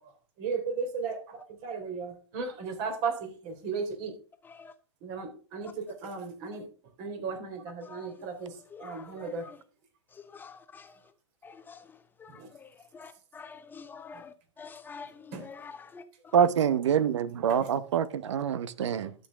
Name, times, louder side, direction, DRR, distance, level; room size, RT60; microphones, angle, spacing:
voice 1, 0.4-4.1 5.0-6.6 7.0-8.5 8.8-9.4 12.4-12.5 15.3-15.4 17.6-17.7, right 5 dB, 45° right, 4.0 m, -35 dB
voice 2, 8.4-9.6 10.3-10.9 11.4-11.8 12.2-12.3 12.6-12.7 12.9-16.0, left 5 dB, 15° left, 1.0 m, -47 dB
voice 3, 16.3-19.1, right 8 dB, 70° right, 1.1 m, -26 dB
12.0 x 8.1 x 3.6 m
hypercardioid pair, 125°, 15 cm